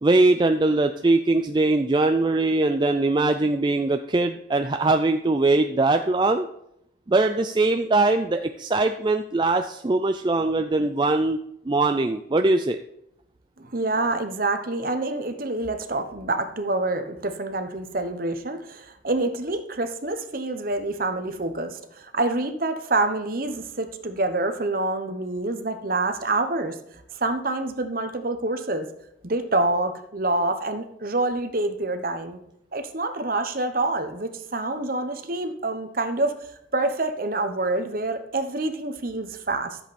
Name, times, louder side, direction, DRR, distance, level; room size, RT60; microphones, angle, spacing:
voice 1, 0.0-6.5 7.1-11.4 11.7-12.8, right 2 dB, 25° right, 6 dB, 0.4 m, -21 dB
voice 2, 13.6-26.8 27.1-28.9 29.2-32.4 32.7-36.4 36.7-39.8, right 2 dB, 45° right, 8 dB, 1.1 m, -27 dB
13.5 x 7.6 x 4.3 m, 0.77 s
head